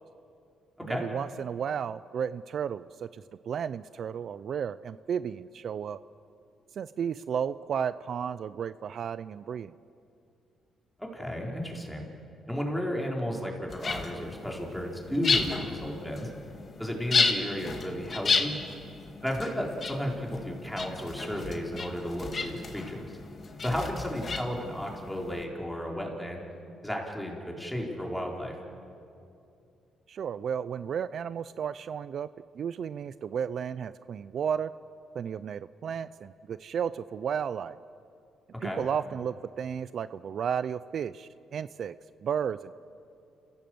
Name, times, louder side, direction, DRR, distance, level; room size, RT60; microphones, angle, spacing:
voice 1, 0.8-6.0 6.7-9.7 30.1-32.3 32.5-34.7 35.1-37.8 38.6-42.0 42.2-42.8, right 8 dB, 60° right, 15 dB, 0.4 m, -33 dB
voice 2, 11.0-12.1 12.5-16.3 16.8-18.6 19.2-23.1 23.6-26.4 26.8-28.6 38.5-38.8, equal, ahead, -1 dB, 4.3 m, -33 dB
sound 1, 13.7-25.4, left 4 dB, 40° left, 2.0 m, -32 dB
29.0 x 16.0 x 7.8 m, 2.6 s
cardioid pair, 90°, 0 cm